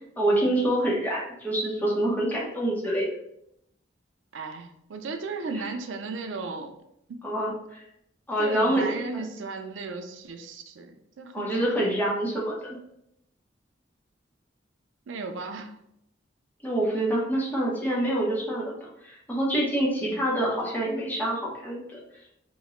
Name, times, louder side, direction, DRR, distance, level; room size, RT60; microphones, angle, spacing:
voice 1, 0.2-3.1 5.5-5.6 7.2-7.8 8.3-8.9 11.3-12.8 16.6-22.0, right 1 dB, 10° left, -5 dB, 0.7 m, -26 dB
voice 2, 4.3-6.7 7.1-7.2 8.4-12.0 15.1-15.7 20.0-20.2, right 3 dB, 85° right, 6 dB, 0.4 m, -36 dB
3.0 x 2.1 x 3.6 m, 0.78 s
head